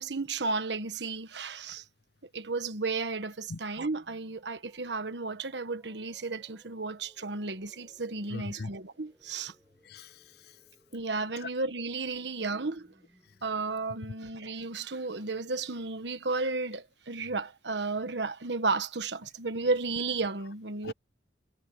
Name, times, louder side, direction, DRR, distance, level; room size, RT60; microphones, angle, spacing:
voice 1, 0.0-1.8 2.3-9.5 10.9-12.9 13.4-20.9, right 3 dB, 70° right, 1.3 m, -33 dB
sound 1, 4.2-16.1, equal, 10° right, 5.5 m, -66 dB
voice 2, 8.3-8.7 9.8-10.6 11.4-11.5 13.2-13.3 14.1-14.2 20.8-20.9, left 3 dB, 60° left, 0.6 m, -41 dB
head